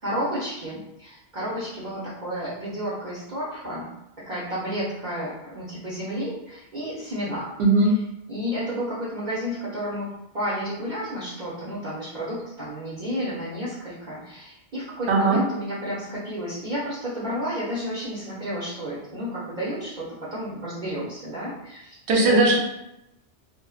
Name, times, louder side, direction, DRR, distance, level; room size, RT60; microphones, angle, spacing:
voice 1, 0.0-3.9 4.3-7.5 8.3-22.4, equal, 50° right, -8 dB, 0.7 m, -31 dB
voice 2, 7.6-7.9 15.1-15.4 22.1-22.6, right 2 dB, 75° right, -1 dB, 0.8 m, -18 dB
2.5 x 2.1 x 2.3 m, 0.87 s
omnidirectional pair, 1.1 m